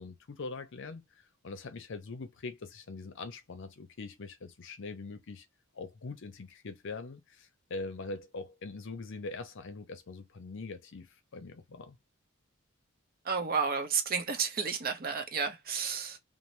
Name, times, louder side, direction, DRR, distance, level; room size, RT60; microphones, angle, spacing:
voice 1, 0.0-5.5 5.7-12.0, left 3 dB, 60° left, 0.6 m, -43 dB
voice 2, 13.2-16.2, right 5 dB, 45° right, 0.6 m, -31 dB
2.6 x 2.0 x 3.1 m
head